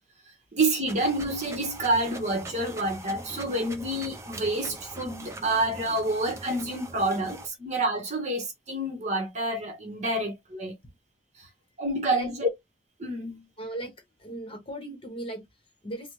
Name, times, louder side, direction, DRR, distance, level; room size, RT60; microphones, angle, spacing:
voice 1, 0.5-10.8 11.4-11.5 11.8-12.5 13.0-13.5, right 1 dB, 35° right, 0.9 m, -28 dB
sound 1, 0.9-7.5, right 2 dB, 15° right, 0.4 m, -42 dB
voice 2, 13.6-16.1, right 1 dB, 30° left, 1.0 m, -38 dB
3.3 x 2.1 x 3.0 m
head